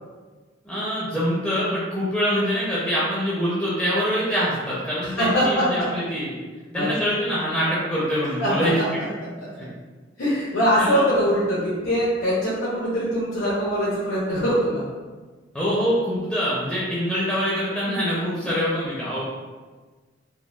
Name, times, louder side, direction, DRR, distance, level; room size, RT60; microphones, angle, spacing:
voice 1, 0.6-6.4 6.7-8.7 9.6-9.7 10.8-11.0 15.5-19.3, equal, 5° left, -8 dB, 0.4 m, -24 dB
voice 2, 5.0-5.9 6.7-6.9 8.4-8.5 9.4-9.5 10.2-14.8 18.4-18.5, equal, 80° left, -10 dB, 0.7 m, -22 dB
3.6 x 2.1 x 2.2 m, 1.4 s
head